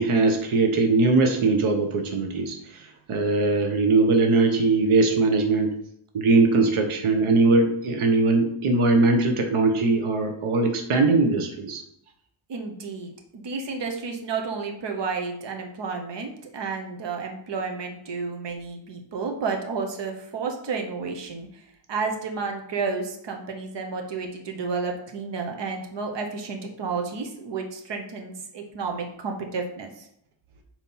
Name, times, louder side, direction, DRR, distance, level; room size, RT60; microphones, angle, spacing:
voice 1, 0.0-5.7 6.1-11.8, right 3 dB, 80° right, 4 dB, 1.0 m, -21 dB
voice 2, 12.5-21.6 21.9-30.1, right 4 dB, 60° right, 2 dB, 1.0 m, -31 dB
4.4 x 4.3 x 5.4 m, 0.75 s
wide cardioid pair, 170°, 49 cm